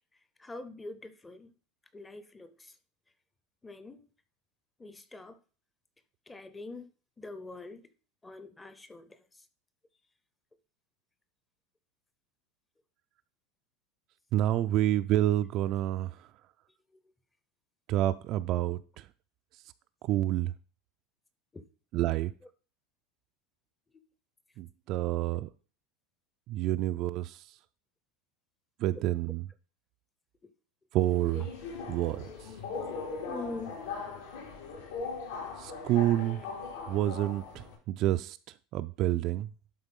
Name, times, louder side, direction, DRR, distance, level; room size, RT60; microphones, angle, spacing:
voice 1, 0.4-1.5 1.9-2.8 3.6-4.1 4.8-5.4 6.3-6.9 7.2-7.9 8.2-9.5 16.9-17.0 21.5-21.6 25.3-25.4 28.9-29.0 33.3-33.8, left 2 dB, 10° left, 0.6 m, -44 dB
voice 2, 14.3-16.1 17.9-18.8 20.1-20.5 21.9-22.3 24.6-25.5 26.5-27.4 28.8-29.4 30.9-31.5 31.9-32.2 35.6-36.4 36.9-38.4 38.7-39.5, right 14 dB, 40° right, 0.3 m, -28 dB
Subway metro underground, 31.0-37.7, left 4 dB, 90° left, 4.1 m, -40 dB
11.5 x 3.9 x 5.3 m
supercardioid pair, 165°, 0 cm